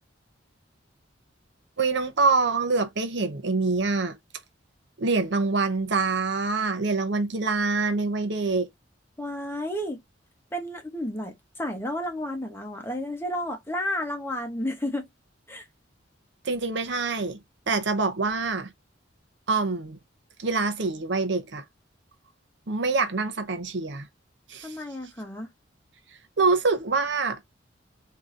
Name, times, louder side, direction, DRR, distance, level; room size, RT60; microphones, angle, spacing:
voice 1, 1.8-4.2 5.0-8.7 16.4-18.7 19.5-20.0 20.4-21.6 22.7-24.1 24.5-24.8 26.4-27.4, right 3 dB, 65° right, 0.7 m, -25 dB
voice 2, 9.2-10.0 10.5-15.1 15.5-15.7 24.6-25.5, left 1 dB, 10° left, 1.1 m, -32 dB
3.7 x 2.8 x 3.7 m
head